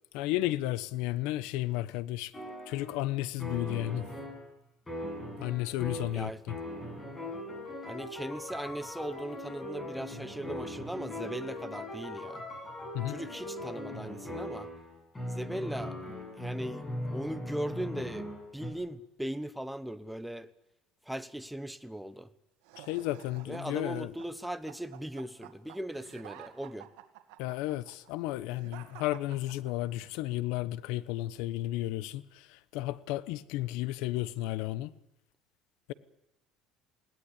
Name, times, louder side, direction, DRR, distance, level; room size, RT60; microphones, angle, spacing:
voice 1, 0.1-2.3 2.7-4.1 5.4-6.5 12.9-13.1 22.8-24.1 27.4-34.9, left 15 dB, 80° left, 1.0 m, -33 dB
sound 1, 2.3-3.1 3.4-4.4 4.9-18.7, left 1 dB, 15° left, 7.7 m, -40 dB
voice 2, 6.1-6.4 7.8-12.4 13.1-14.7 15.2-16.0 16.3-20.5 21.0-22.3 23.5-26.9, right 1 dB, ahead, 1.1 m, -38 dB
sound 2, 22.6-30.1, right 15 dB, 90° right, 2.1 m, -51 dB
20.0 x 18.0 x 10.0 m
cardioid pair, 125°, 0 cm